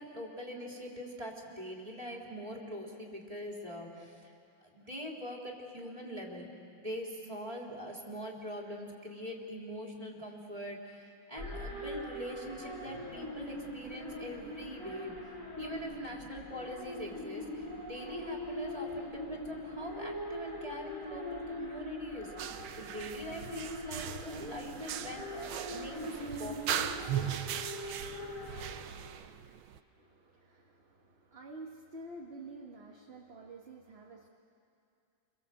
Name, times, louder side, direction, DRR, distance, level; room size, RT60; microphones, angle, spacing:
voice 1, 0.0-4.3 4.6-6.5 6.8-15.1 15.6-26.9, equal, 15° right, -1 dB, 3.4 m, -43 dB
sound 1, 11.4-28.7, left 1 dB, 40° left, 8.0 m, -42 dB
sound 2, 22.4-29.8, right 10 dB, 85° right, 1.6 m, -39 dB
voice 2, 29.9-34.3, right 2 dB, 35° right, -1 dB, 1.6 m, -49 dB
29.0 x 23.0 x 7.9 m, 2.6 s
omnidirectional pair, 2.1 m